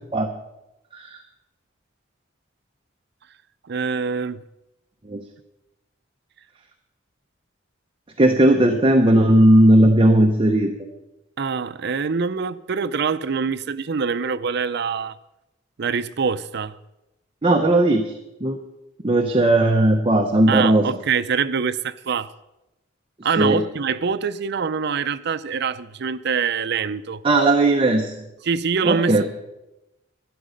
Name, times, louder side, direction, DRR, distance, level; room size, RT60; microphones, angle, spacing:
voice 1, 3.7-4.4 11.4-15.2 15.8-16.8 20.5-22.3 23.2-27.2 28.4-29.2, right 5 dB, 60° right, 0.5 m, -24 dB
voice 2, 8.2-10.9 17.4-18.1 18.4-18.6 19.0-20.9 23.4-23.6 27.2-28.1 28.8-29.2, right 1 dB, 30° right, 0.8 m, -17 dB
12.5 x 11.5 x 5.2 m
head